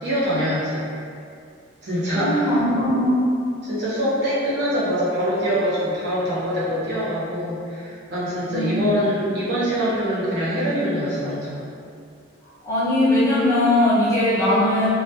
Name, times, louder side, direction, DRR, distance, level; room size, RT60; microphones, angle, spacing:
voice 1, 0.0-0.9 1.8-2.6 2.9-3.0 3.6-11.6, equal, 55° right, -9 dB, 0.8 m, -24 dB
voice 2, 2.1-3.3 8.5-8.9 12.7-14.9, left 1 dB, 15° left, -11 dB, 0.6 m, -20 dB
2.2 x 2.2 x 2.7 m, 2.3 s
head